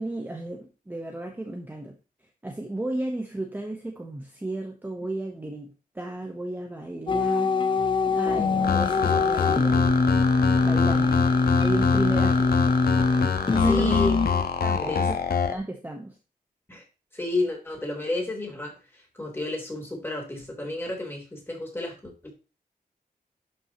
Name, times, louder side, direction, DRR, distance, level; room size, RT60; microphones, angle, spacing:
voice 1, 0.0-1.9 2.4-7.5 8.1-10.0 10.5-11.2 11.6-12.6 13.5-14.0 14.6-15.2 15.5-16.2, right 2 dB, 10° right, 3 dB, 1.1 m, -33 dB
sound 1, 7.1-14.5, left 4 dB, 30° left, 0.7 m, -23 dB
sound 2, 8.6-15.6, left 6 dB, 80° left, 1.2 m, -26 dB
voice 2, 13.7-14.1 14.7-15.1 16.7-16.8 17.1-22.3, left 2 dB, 15° left, 0 dB, 3.5 m, -31 dB
11.5 x 6.0 x 3.0 m, 0.32 s
wide cardioid pair, 165°, 16 cm